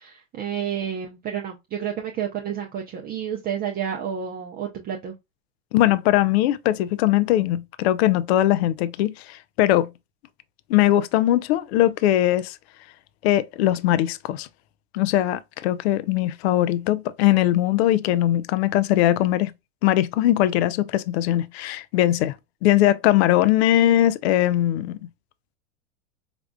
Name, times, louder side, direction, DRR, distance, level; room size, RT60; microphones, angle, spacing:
voice 1, 0.0-5.1, right 8 dB, 25° right, 0.6 m, -30 dB
voice 2, 5.7-9.9 10.7-12.6 13.2-14.5 14.9-19.5 19.8-22.3 22.6-25.0, left 13 dB, 55° left, 0.5 m, -20 dB
5.1 x 2.4 x 2.2 m
hypercardioid pair, 100°, 38 cm